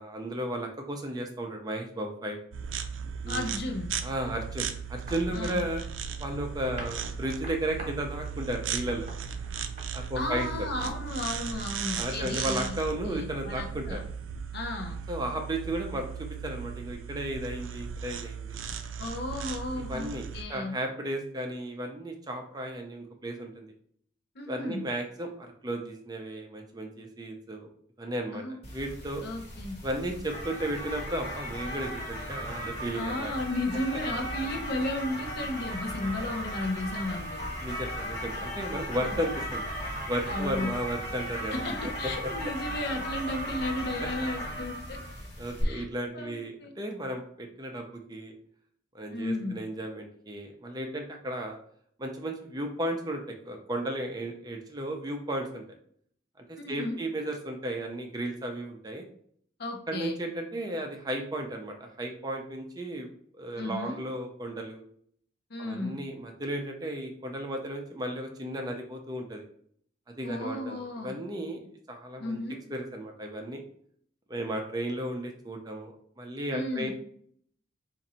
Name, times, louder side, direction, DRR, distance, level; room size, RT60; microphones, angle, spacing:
voice 1, 0.0-2.4 3.2-3.6 4.0-5.8 6.2-9.1 9.9-10.7 12.0-14.0 15.1-18.6 19.8-20.2 20.5-23.7 24.5-27.7 28.0-28.4 28.7-29.2 29.8-33.3 37.6-39.7 40.1-42.3 45.4-48.3 48.9-51.6 52.0-55.6 56.5-59.0 59.9-63.1 63.4-64.8 65.6-69.4 70.2-71.6 71.9-72.4 72.7-73.6 74.3-76.9, right 1 dB, 20° right, 3 dB, 0.5 m, -34 dB
sound 1, 2.5-20.4, right 7 dB, 80° right, 0.4 m, -37 dB
voice 2, 3.3-3.9 5.3-5.6 10.1-12.8 13.0-14.0 14.5-15.0 19.0-20.7 24.4-24.8 28.3-28.6 29.2-29.8 32.9-37.4 39.0-39.1 40.3-40.7 41.5-45.0 45.6-45.9 46.1-46.7 49.1-49.6 56.6-57.0 59.6-60.2 63.6-64.0 65.5-66.0 70.2-71.1 72.2-72.6 76.5-76.9, left 1 dB, 55° left, 3 dB, 0.7 m, -34 dB
sound 2, 4.5-12.4, right 1 dB, 35° right, 1.0 m, -48 dB
sound 3, 28.6-45.6, equal, 30° left, 1.0 m, -36 dB
3.9 x 2.5 x 4.2 m, 0.62 s
head